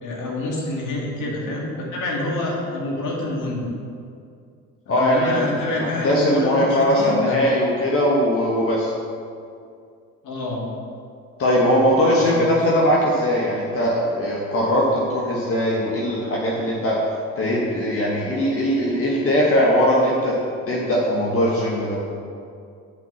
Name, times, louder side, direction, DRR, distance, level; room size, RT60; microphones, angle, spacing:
voice 1, 0.0-3.7 4.9-7.4 10.2-10.7 12.2-12.4, left 2 dB, 70° left, -3 dB, 2.2 m, -27 dB
voice 2, 4.9-8.9 11.4-17.0 17.3-20.4 20.7-22.0, equal, 45° left, -4 dB, 1.6 m, -20 dB
6.6 x 5.1 x 7.0 m, 2.4 s
supercardioid pair, 80°, 32 cm